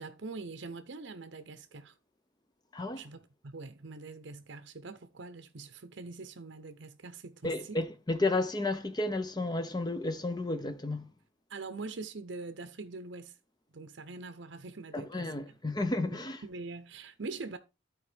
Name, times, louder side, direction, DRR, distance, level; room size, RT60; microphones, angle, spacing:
voice 1, 0.0-1.9 3.0-7.8 11.5-13.3 13.7-15.3 16.0-17.6, right 3 dB, 60° right, 0.7 m, -43 dB
voice 2, 2.7-3.0 7.4-11.1 14.9-16.4, left 2 dB, 20° left, 0.6 m, -32 dB
12.5 x 4.6 x 3.3 m
head